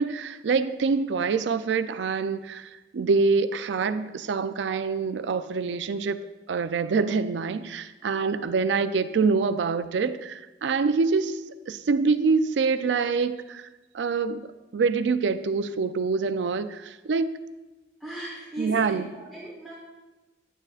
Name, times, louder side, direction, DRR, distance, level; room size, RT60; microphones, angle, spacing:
voice 1, 0.0-6.2 6.5-11.4 11.7-13.7 13.9-14.5 14.7-17.3 18.6-19.1, right 4 dB, 85° right, 12 dB, 0.4 m, -25 dB
voice 2, 18.0-19.7, right 1 dB, ahead, -6 dB, 1.2 m, -38 dB
9.7 x 8.9 x 2.4 m, 1.1 s
head